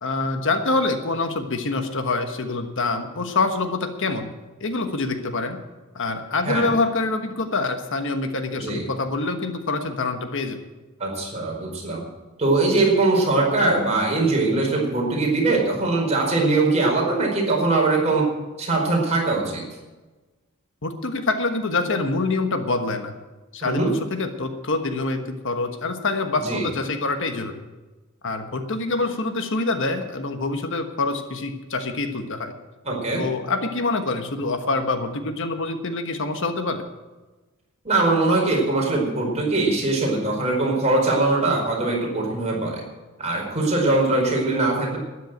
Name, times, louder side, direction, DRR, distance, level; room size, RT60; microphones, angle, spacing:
voice 1, 0.0-4.3 4.6-5.6 5.9-10.6 20.8-23.1 23.5-27.6 28.2-32.5 33.2-36.8, left 3 dB, 60° left, 7 dB, 1.3 m, -25 dB
voice 2, 11.0-12.0 12.4-18.2 18.6-19.6 23.6-23.9 26.4-26.6 32.8-33.2 37.8-42.8 43.2-45.0, right 2 dB, 30° right, -2 dB, 4.9 m, -21 dB
13.0 x 10.5 x 7.9 m, 1.2 s
head